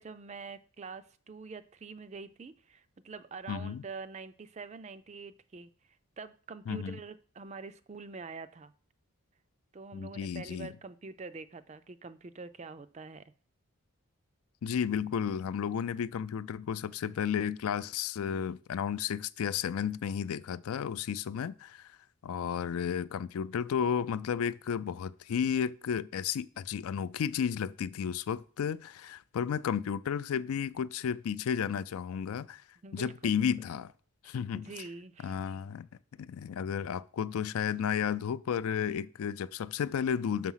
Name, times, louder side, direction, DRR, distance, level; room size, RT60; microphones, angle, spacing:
voice 1, 0.0-5.7 6.2-8.7 9.7-13.2 32.8-33.3 34.2-35.4, right 4 dB, 30° right, 0.4 m, -45 dB
voice 2, 3.5-3.8 6.7-7.0 9.9-10.7 14.6-22.0 22.2-32.6 32.9-33.9 34.2-34.7 35.2-35.9 36.2-40.5, left 7 dB, 75° left, 0.3 m, -33 dB
6.3 x 6.0 x 5.6 m
head